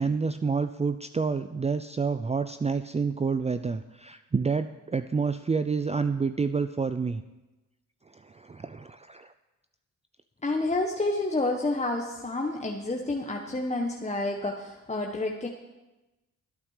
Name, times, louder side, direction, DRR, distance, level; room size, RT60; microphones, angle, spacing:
voice 1, 0.0-7.2 8.1-9.3, right 5 dB, 20° right, 11 dB, 0.5 m, -28 dB
voice 2, 10.4-15.5, left 2 dB, 20° left, 1 dB, 1.3 m, -29 dB
12.0 x 8.8 x 6.6 m, 1.1 s
supercardioid pair, 60°, 33 cm